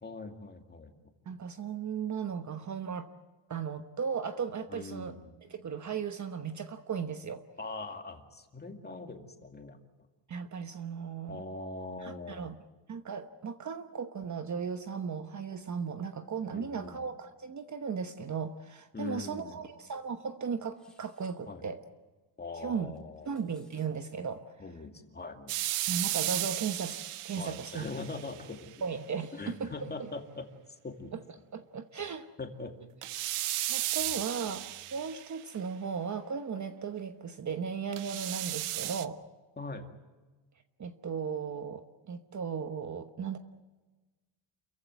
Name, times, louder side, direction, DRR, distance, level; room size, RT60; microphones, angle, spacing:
voice 1, 0.0-0.9 4.7-5.3 7.6-9.8 11.3-12.5 16.5-17.0 18.9-19.6 21.5-21.7 22.4-23.3 24.6-25.6 27.4-28.7 29.3-30.5 30.8-31.1 32.4-32.7 39.6-39.9, left 3 dB, 20° left, 5 dB, 2.4 m, -41 dB
voice 2, 1.3-3.1 3.5-5.1 5.4-7.4 10.3-11.4 12.0-12.6 12.9-21.8 22.6-22.9 23.3-24.6 25.9-27.0 27.2-27.8 28.1-28.2 28.8-30.1 31.1-31.2 31.5-32.3 33.7-39.2 40.8-43.4, right 6 dB, 35° right, 9 dB, 1.1 m, -36 dB
sound 1, 20.7-21.4 23.0-23.9, left 2 dB, ahead, 3.9 m, -65 dB
sound 2, 25.5-28.6 33.0-35.6 37.9-39.1, right 14 dB, 85° right, 1.0 m, -34 dB
29.0 x 15.5 x 9.5 m, 1.2 s
cardioid pair, 150°, 49 cm